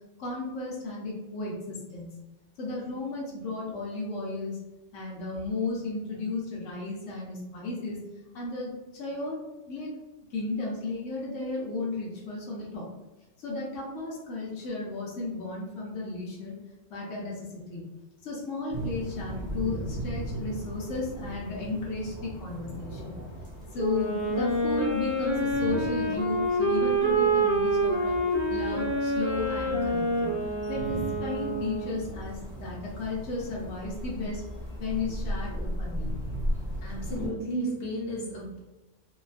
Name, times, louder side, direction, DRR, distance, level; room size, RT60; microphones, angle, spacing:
voice 1, 0.2-2.1 2.6-4.6 4.9-8.0 8.3-9.4 9.7-9.9 10.3-12.9 13.4-16.6 16.9-17.8 18.2-23.2 23.7-28.1 28.5-30.3 30.7-34.4 34.8-36.2, left 3 dB, 90° left, -4 dB, 1.0 m, -34 dB
sound 1, 18.7-37.3, equal, 25° left, 0.7 m, -37 dB
Wind instrument woodwind instrument, 23.8-32.1, right 1 dB, 10° right, 0.9 m, -27 dB
voice 2, 36.8-38.6, right 1 dB, 65° left, -4 dB, 1.1 m, -33 dB
2.6 x 2.2 x 2.4 m, 1.1 s
omnidirectional pair, 1.2 m